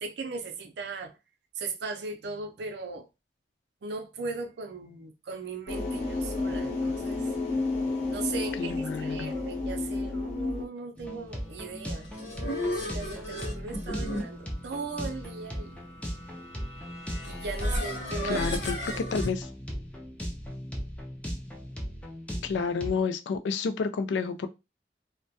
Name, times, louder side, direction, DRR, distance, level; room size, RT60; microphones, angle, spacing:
voice 1, 0.0-1.1 1.6-3.1 3.8-7.3 8.1-15.8 17.3-18.4 18.8-19.0, right 4 dB, 70° right, 0.5 m, -38 dB
sound 1, 5.7-10.6, left 3 dB, 40° left, 0.9 m, -31 dB
voice 2, 8.6-9.3 18.2-18.8 19.1-19.5 22.4-24.5, left 5 dB, 90° left, 0.3 m, -30 dB
sound 2, 11.0-23.0, equal, 5° left, 0.4 m, -38 dB
sound 3, 11.8-19.3, left 1 dB, 70° left, 0.7 m, -35 dB
2.2 x 2.1 x 2.6 m
head